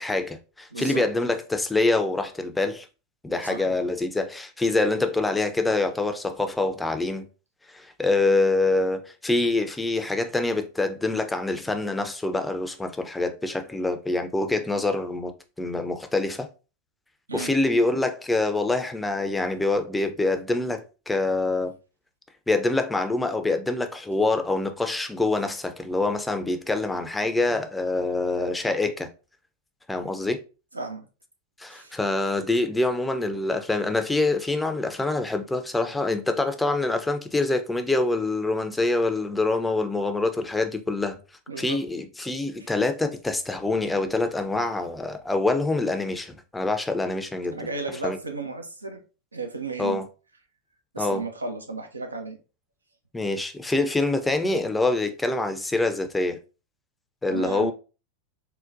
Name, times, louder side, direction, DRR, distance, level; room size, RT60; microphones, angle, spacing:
voice 1, 0.0-2.9 3.2-7.3 7.7-15.3 15.6-16.5 17.3-21.7 22.5-29.1 29.9-30.4 31.6-41.2 41.6-47.6 48.0-48.2 49.8-50.0 51.0-51.2 53.1-56.4 57.2-57.7, left 2 dB, 10° left, 0.4 m, -25 dB
voice 2, 0.7-1.0 3.4-3.8 17.3-17.5 30.7-31.1 31.7-32.0 41.5-41.8 42.6-42.7 47.5-49.0 49.3-50.0 50.9-52.4 57.3-57.7, right 3 dB, 90° right, 0.5 m, -34 dB
3.8 x 2.1 x 2.5 m
figure-of-eight pair, 90°, 0 cm